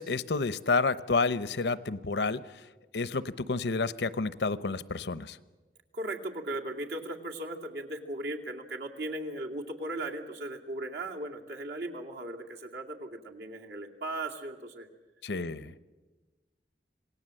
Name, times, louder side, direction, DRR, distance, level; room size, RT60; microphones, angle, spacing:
voice 1, 0.0-2.6 2.9-5.4 15.2-15.8, left 4 dB, 80° left, 16 dB, 0.8 m, -30 dB
voice 2, 5.9-14.9 15.6-15.8, right 1 dB, 75° right, 1 dB, 2.5 m, -37 dB
27.0 x 18.0 x 7.7 m, 1.2 s
head